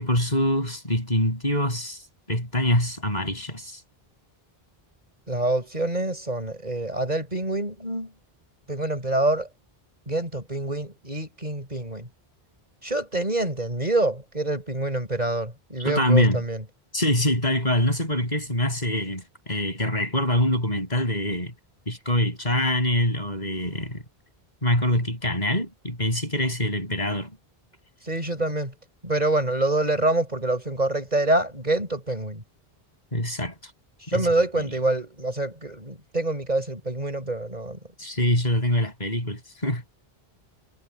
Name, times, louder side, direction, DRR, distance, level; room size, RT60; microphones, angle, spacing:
voice 1, 0.0-2.0 2.3-3.8 15.8-16.4 16.9-21.5 21.9-24.0 24.6-27.3 33.1-33.7 34.1-34.3 38.0-39.8, left 1 dB, 45° left, 7.7 m, -24 dB
voice 2, 5.3-8.1 8.7-9.5 10.1-12.1 12.8-16.6 28.0-28.7 29.0-32.4 34.0-37.8, right 2 dB, 45° right, 7.0 m, -26 dB
omnidirectional pair, 1.0 m